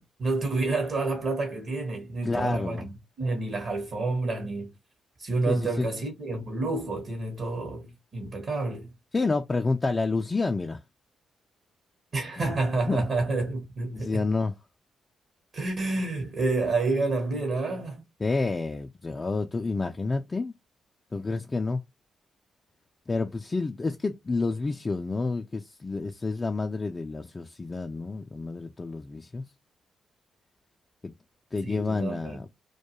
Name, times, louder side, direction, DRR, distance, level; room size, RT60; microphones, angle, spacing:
voice 1, 0.0-4.7 5.2-8.9 12.1-14.2 15.5-18.0 31.6-32.4, right 3 dB, 55° right, 0.9 m, -29 dB
voice 2, 2.2-2.9 5.5-5.9 9.1-10.8 12.4-12.5 12.9-13.0 13.9-14.5 18.2-20.5 21.1-21.8 23.1-29.4 31.0-31.1 31.5-32.5, left 3 dB, 30° left, 0.3 m, -29 dB
2.2 x 2.2 x 2.9 m
hypercardioid pair, 40°, 0 cm